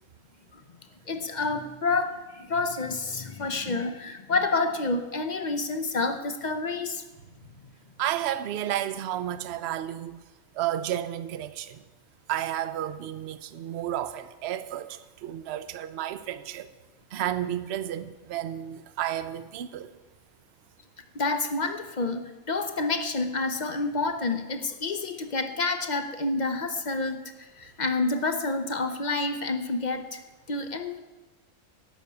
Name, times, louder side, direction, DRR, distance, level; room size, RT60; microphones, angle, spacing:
voice 1, 1.1-7.0 21.1-30.2 30.5-31.0, left 3 dB, 45° left, 0.7 m, -29 dB
voice 2, 8.0-10.2 10.5-11.8 12.3-16.7 17.1-19.9, right 11 dB, 60° right, 0.8 m, -32 dB
11.5 x 5.8 x 8.3 m
omnidirectional pair, 1.4 m